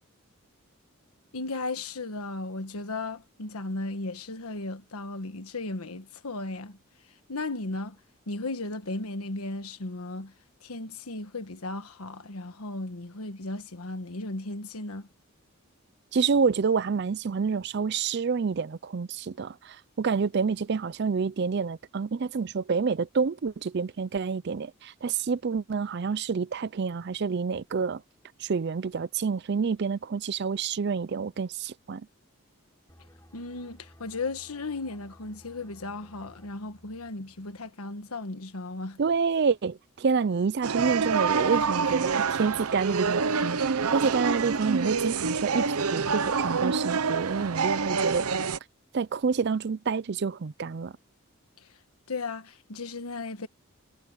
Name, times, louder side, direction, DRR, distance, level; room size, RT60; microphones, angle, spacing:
voice 1, 1.3-6.8 7.3-8.0 8.3-10.3 10.6-15.1 33.3-39.0 51.6-51.7 52.1-53.5, left 2 dB, 90° left, 1.4 m, -35 dB
voice 2, 16.1-28.0 28.4-32.1 39.0-48.3 48.9-50.9, right 5 dB, 50° right, 0.4 m, -28 dB
sound 1, 32.9-38.3 38.6-38.8, equal, 15° left, 7.0 m, -56 dB
sound 2, 40.6-48.6, right 5 dB, 90° right, 0.8 m, -27 dB
head